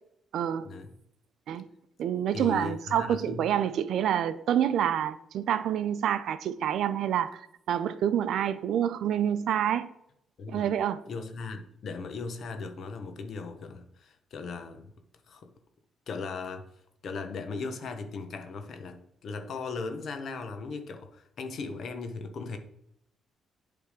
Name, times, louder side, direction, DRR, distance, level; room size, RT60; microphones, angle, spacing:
voice 1, 0.3-0.7 1.5-1.7 2.0-9.9 10.5-11.0, right 9 dB, 75° right, 0.5 m, -27 dB
voice 2, 2.3-3.5 10.4-10.7 11.1-14.9 15.3-15.5 16.1-16.7 17.0-22.6, left 4 dB, 60° left, 0.9 m, -38 dB
8.2 x 3.5 x 4.9 m
cardioid pair, 90°, 0 cm